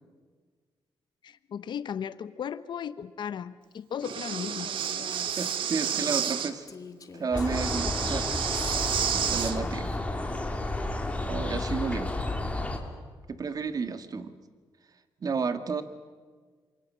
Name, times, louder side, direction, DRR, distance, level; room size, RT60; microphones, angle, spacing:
voice 1, 1.2-4.7, left 8 dB, 65° left, 14 dB, 0.8 m, -36 dB
Breathing, 4.0-6.5 7.5-9.6, right 9 dB, 85° right, 1.6 m, -30 dB
Female speech woman speaking, 4.6-10.0, left 5 dB, 45° left, 1.7 m, -46 dB
voice 2, 5.4-6.7 7.1-8.3 9.1-9.9 11.3-12.1 13.3-14.4 15.2-15.8, right 5 dB, 45° right, 10 dB, 1.8 m, -31 dB
sound 1, 7.3-12.8, left 2 dB, 15° left, 3.1 m, -31 dB
27.5 x 23.0 x 7.4 m, 1.5 s
cardioid pair, 100°, 9 cm